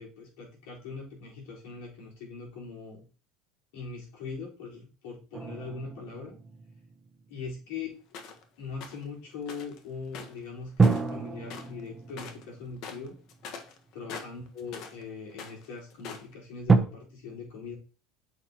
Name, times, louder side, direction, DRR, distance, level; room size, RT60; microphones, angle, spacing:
voice 1, 0.0-3.0 3.7-6.3 7.3-7.9 8.6-13.2 13.9-17.7, left 4 dB, 80° left, -3 dB, 4.0 m, -41 dB
sound 1, 5.3-7.9 10.8-14.1 14.8-14.9 16.7-16.8, right 4 dB, 20° right, 0.9 m, -28 dB
sound 2, 8.1-8.4 8.8-9.0 9.5-9.8 10.1-11.2 11.5-11.8 12.1-12.4 12.8-15.0 15.3-16.3, left 5 dB, 60° left, 1.3 m, -43 dB
8.6 x 5.8 x 2.9 m, 0.36 s
supercardioid pair, 105°, 0 cm